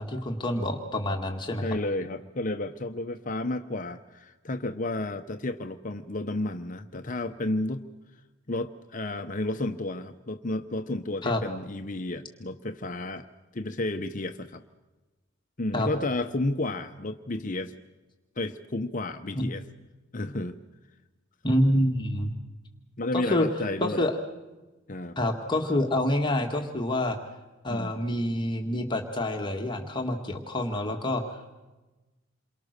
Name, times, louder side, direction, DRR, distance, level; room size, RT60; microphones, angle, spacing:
voice 1, 0.0-1.6 11.2-11.4 15.7-15.9 19.4-19.5 21.4-22.3 23.1-23.5 23.8-24.1 25.2-27.2 27.6-31.5, left 1 dB, 25° left, 3 dB, 1.8 m, -27 dB
voice 2, 1.6-7.9 8.5-13.3 13.5-14.6 15.6-17.8 18.4-19.6 20.1-20.6 23.0-24.0 24.9-25.2 27.7-27.9, left 2 dB, 40° left, 8 dB, 0.9 m, -32 dB
28.5 x 23.5 x 6.6 m, 1.1 s
head